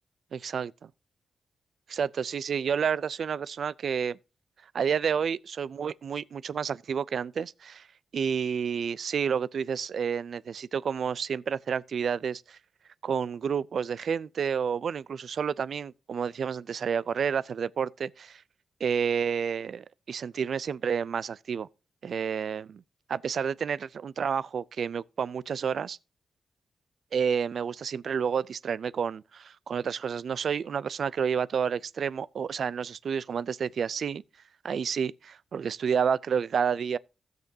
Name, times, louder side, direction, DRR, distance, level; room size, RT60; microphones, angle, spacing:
voice 1, 0.3-0.9 1.9-4.2 4.7-7.9 8.1-12.6 13.0-18.4 18.8-21.7 22.0-22.8 23.1-26.0 27.1-34.2 34.6-37.0, right 7 dB, 70° right, 0.4 m, -30 dB
16.0 x 6.6 x 2.7 m
cardioid pair, 75°, 0 cm